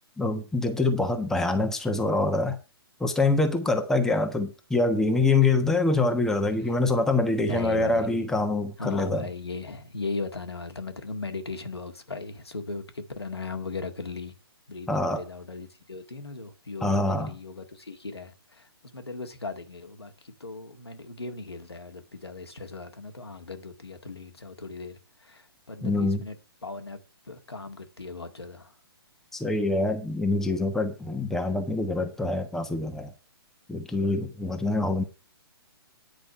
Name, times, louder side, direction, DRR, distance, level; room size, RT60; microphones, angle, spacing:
voice 1, 0.2-2.6 3.0-9.3 14.9-15.2 16.8-17.3 25.8-26.2 29.3-33.1 33.7-35.0, left 2 dB, 5° left, 1.2 m, -25 dB
voice 2, 7.4-8.1 8.8-14.3 14.7-26.4 26.6-27.0 27.3-28.7, left 3 dB, 90° left, 1.9 m, -37 dB
9.8 x 5.1 x 7.2 m
figure-of-eight pair, 130°, 13 cm